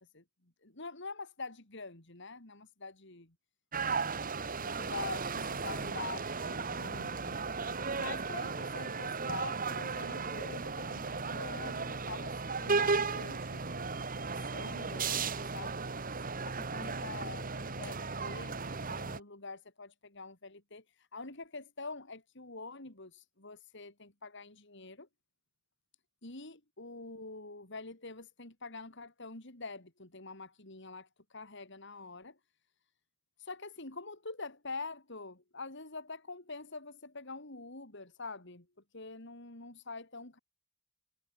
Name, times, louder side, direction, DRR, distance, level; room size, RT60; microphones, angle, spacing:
voice 1, 0.6-3.3 3.8-7.5 8.0-13.9 14.1-15.8 16.4-25.1 26.2-32.4 33.4-38.7 38.9-40.4, left 3 dB, 60° left, 4.0 m, -46 dB
sound 1, 3.7-19.2, right 4 dB, 45° right, 1.8 m, -35 dB
head